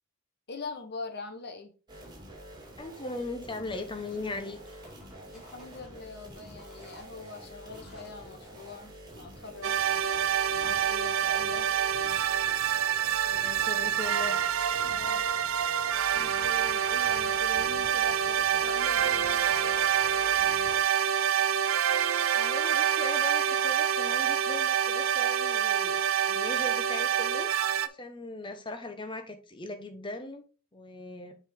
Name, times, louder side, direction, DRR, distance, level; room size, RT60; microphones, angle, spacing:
voice 1, 0.5-1.7 5.3-9.8 10.6-11.9 14.8-15.2 16.1-19.8, left 3 dB, 50° left, 1.1 m, -43 dB
sound 1, 1.9-20.8, right 1 dB, 20° right, 2.4 m, -48 dB
voice 2, 2.8-4.6 13.2-14.5 22.4-26.0 26.3-27.5 27.8-30.4 30.7-31.4, left 2 dB, 20° left, 1.0 m, -39 dB
sound 2, 3.6-4.4 4.7-6.0 6.5-8.2, left 1 dB, 5° right, 3.6 m, -57 dB
sound 3, 9.6-27.9, right 9 dB, 70° right, 0.5 m, -27 dB
7.3 x 5.0 x 3.8 m
head